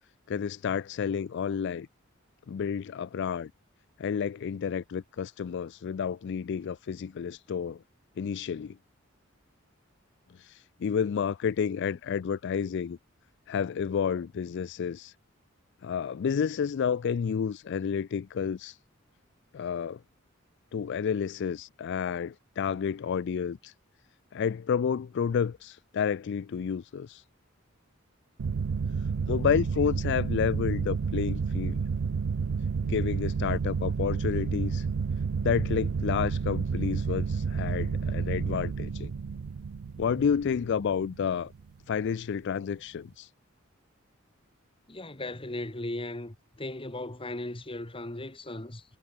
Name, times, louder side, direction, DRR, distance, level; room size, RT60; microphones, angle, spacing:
voice 1, 0.3-1.9 2.5-3.5 4.0-7.8 8.2-8.8 10.3-13.0 13.5-15.1 15.8-18.8 19.5-20.0 20.7-23.7 24.3-27.2 29.3-31.8 32.8-34.9 35.4-39.1 40.0-41.5 41.9-43.3, left 7 dB, 60° left, 0.4 m, -30 dB
sound 1, 28.4-41.6, right 5 dB, 85° right, 0.5 m, -30 dB
voice 2, 44.9-48.8, left 1 dB, 25° left, 2.3 m, -37 dB
head